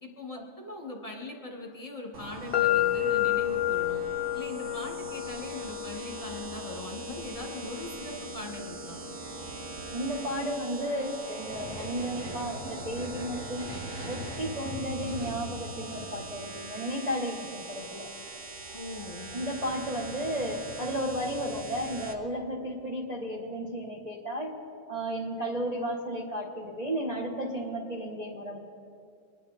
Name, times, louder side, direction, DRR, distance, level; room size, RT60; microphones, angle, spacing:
voice 1, 0.0-4.0 4.3-9.0 18.7-19.3, left 2 dB, 20° left, -1 dB, 1.7 m, -40 dB
sound 1, 2.1-22.1, right 3 dB, 50° right, 1.4 m, -42 dB
sound 2, 2.5-10.4, left 14 dB, 60° left, 0.5 m, -32 dB
voice 2, 9.9-13.7 14.1-18.1 19.3-24.5 24.9-28.6, equal, 25° right, -1 dB, 1.1 m, -33 dB
sound 3, 11.4-16.3, equal, 70° right, 4.2 m, -40 dB
25.0 x 10.5 x 4.2 m, 2.4 s
omnidirectional pair, 1.8 m